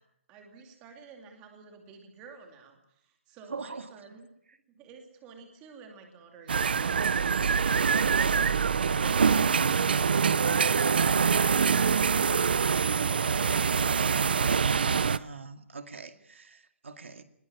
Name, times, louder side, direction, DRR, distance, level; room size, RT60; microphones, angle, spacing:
voice 1, 0.3-4.3 4.7-8.6 16.1-16.2, right 5 dB, 10° right, 3 dB, 2.5 m, -51 dB
voice 2, 3.5-4.0 14.4-17.2, right 4 dB, 75° right, 8 dB, 2.2 m, -42 dB
sound 1, 6.5-15.2, right 6 dB, 50° right, 0.7 m, -24 dB
20.5 x 19.0 x 7.3 m, 0.75 s
hypercardioid pair, 175°, 7 cm